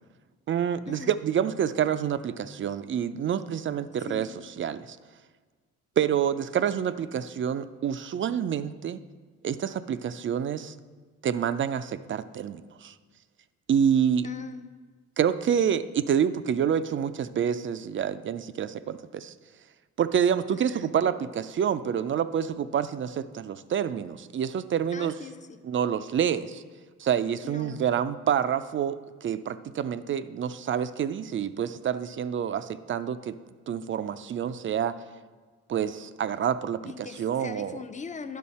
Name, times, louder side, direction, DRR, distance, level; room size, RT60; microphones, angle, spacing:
voice 1, 0.5-4.3 4.6-5.0 6.0-9.0 9.4-10.7 11.2-12.9 13.7-14.3 15.2-19.3 20.0-25.1 25.6-26.6 27.0-33.4 33.7-35.0 35.7-37.8, right 8 dB, 40° right, 13 dB, 0.5 m, -27 dB
voice 2, 4.0-4.4 14.2-14.8 20.5-20.9 24.9-25.6 27.4-27.8 36.8-38.4, left 5 dB, 25° left, 9 dB, 0.6 m, -41 dB
10.5 x 6.2 x 4.2 m, 1.5 s
cardioid pair, 90°, 30 cm